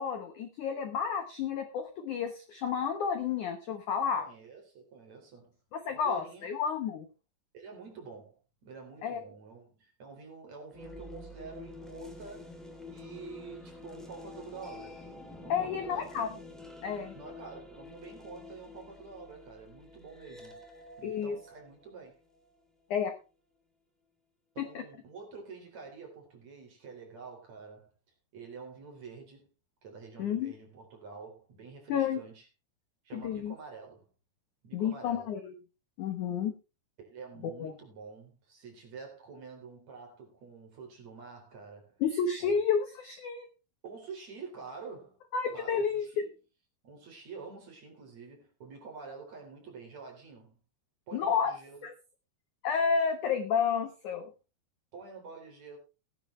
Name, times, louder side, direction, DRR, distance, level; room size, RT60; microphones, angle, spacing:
voice 1, 0.0-4.3 5.7-7.1 9.0-9.2 15.5-16.3 16.8-17.1 21.0-21.4 22.9-23.1 24.6-24.8 30.2-30.5 31.9-32.2 33.1-33.6 34.7-35.5 36.0-36.5 37.6-37.7 42.0-43.5 45.3-46.1 51.1-51.5 51.8-51.9 52.6-54.3, left 6 dB, 70° left, 1.9 m, -31 dB
voice 2, 4.2-5.6 5.9-6.5 7.5-12.6 12.9-15.0 15.4-16.2 17.1-20.6 21.0-22.2 24.5-27.9 28.3-29.5 29.8-32.5 33.0-34.1 34.6-35.3 37.0-42.0 42.4-42.6 43.8-45.2 45.5-46.3 46.8-50.5 51.1-51.9 54.9-55.8, right 5 dB, 40° right, 4.7 m, -48 dB
sound 1, 10.7-22.5, left 2 dB, ahead, 1.7 m, -48 dB
17.5 x 9.9 x 3.2 m
omnidirectional pair, 5.1 m